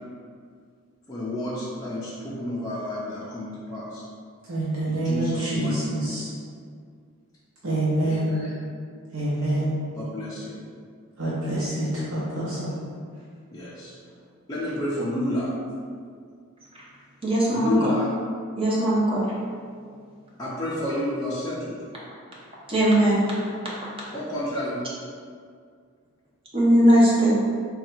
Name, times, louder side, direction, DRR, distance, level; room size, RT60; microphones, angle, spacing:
voice 1, 1.1-4.0 4.9-6.1 8.0-8.5 9.9-10.6 13.5-13.9 14.5-15.5 17.5-18.1 20.4-21.8 24.1-24.8, left 1 dB, 15° left, -9 dB, 0.5 m, -30 dB
voice 2, 4.5-6.3 7.6-8.3 9.1-9.8 11.2-12.7, right 1 dB, 65° right, -9 dB, 0.9 m, -26 dB
voice 3, 17.2-17.8 18.6-19.2 22.7-23.2 26.5-27.3, right 1 dB, 25° right, -7 dB, 0.8 m, -19 dB
3.6 x 2.3 x 4.4 m, 2.1 s
head